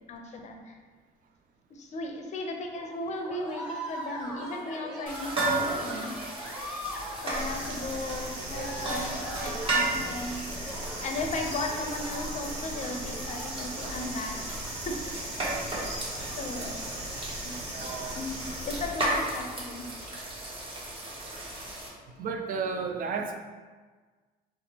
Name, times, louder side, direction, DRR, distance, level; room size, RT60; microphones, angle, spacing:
voice 1, 0.1-0.8 1.7-6.2 7.2-10.5 11.0-14.4 14.8-15.0 15.7-16.0 16.4-16.8 17.2-17.6 18.2-19.9, left 2 dB, 45° left, 3 dB, 0.5 m, -36 dB
sound 1, 2.8-18.2, equal, 5° right, 0.8 m, -42 dB
sound 2, 5.1-21.9, right 2 dB, 30° right, 1.0 m, -35 dB
sound 3, 7.3-18.9, right 1 dB, 80° right, 1.1 m, -39 dB
voice 2, 8.4-9.1 9.5-9.8 17.7-18.1 22.2-23.4, right 5 dB, 55° right, 5 dB, 0.4 m, -34 dB
3.5 x 3.0 x 2.8 m, 1.4 s
cardioid pair, 110°, 17 cm